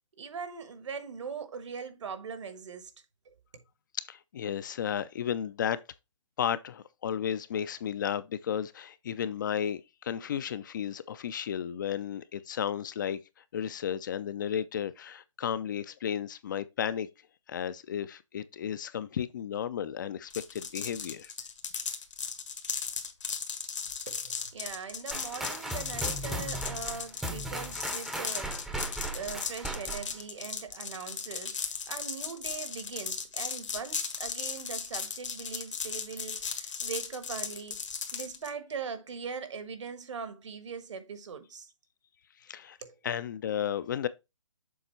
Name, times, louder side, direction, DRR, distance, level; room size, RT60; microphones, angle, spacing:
voice 1, 0.2-2.9 3.2-3.6 24.1-28.8 29.1-37.8 38.1-41.7 42.8-43.0, right 6 dB, 65° right, 1.4 m, -41 dB
voice 2, 4.0-5.8 6.4-17.1 17.5-21.3 42.4-42.8 43.0-44.1, left 9 dB, 40° left, 0.5 m, -33 dB
sound 1, 20.3-38.5, left 6 dB, 70° left, 1.5 m, -36 dB
sound 2, 25.1-30.2, right 1 dB, ahead, 0.7 m, -37 dB
7.0 x 4.0 x 4.4 m
hypercardioid pair, 160°, 16 cm